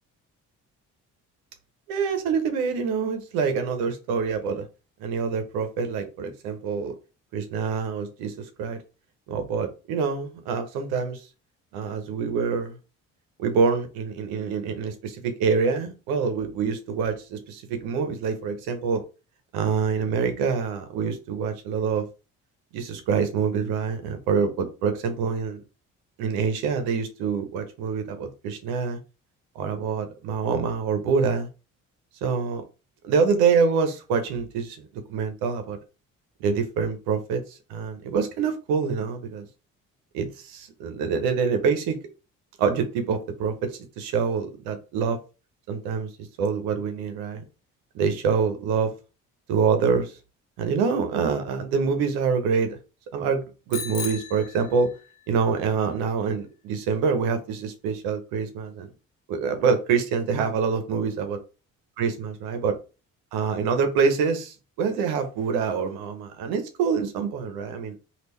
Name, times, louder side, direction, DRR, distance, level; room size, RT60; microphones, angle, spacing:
voice 1, 1.9-4.7 5.0-6.9 7.3-8.8 9.3-11.2 11.7-12.8 13.4-19.0 19.5-22.1 22.7-25.6 26.2-29.0 29.6-31.5 32.2-32.6 33.0-35.8 36.4-39.5 40.1-42.0 42.6-45.2 45.7-46.1 46.4-47.4 47.9-48.9 49.5-50.1 50.6-52.8 53.1-54.9 55.3-58.9 59.3-61.4 62.0-62.7 63.3-67.9, right 5 dB, 85° right, 7 dB, 0.7 m, -26 dB
Bicycle bell, 53.7-55.3, left 6 dB, 85° left, 0.8 m, -36 dB
3.5 x 2.4 x 3.1 m, 0.32 s
supercardioid pair, 60°, 37 cm